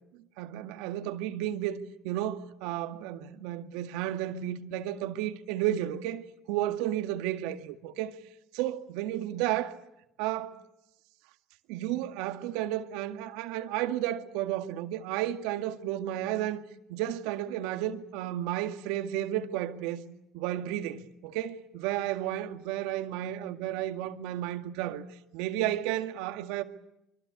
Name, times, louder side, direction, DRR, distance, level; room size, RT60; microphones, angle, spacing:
voice 1, 0.4-1.8 2.0-6.2 6.5-8.2 8.5-9.8 10.2-10.6 11.7-16.6 16.9-20.0 20.3-25.0 25.3-26.6, right 12 dB, 80° right, 1.9 m, -32 dB
25.5 x 24.5 x 8.4 m
hypercardioid pair, 70°, 0 cm